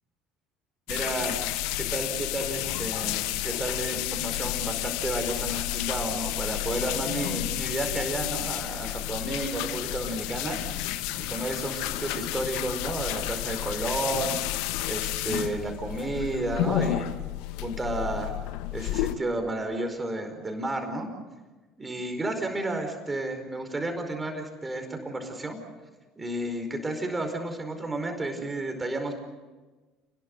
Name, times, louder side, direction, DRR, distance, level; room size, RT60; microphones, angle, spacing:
sound 1, 0.9-19.1, left 14 dB, 65° left, 1.1 m, -31 dB
voice 1, 0.9-1.4 1.8-17.1 17.6-18.3 18.7-21.1 21.8-25.6 26.2-29.1, right 2 dB, 20° right, 4 dB, 4.9 m, -32 dB
29.0 x 21.0 x 6.6 m, 1.3 s
hypercardioid pair, 65°, 0 cm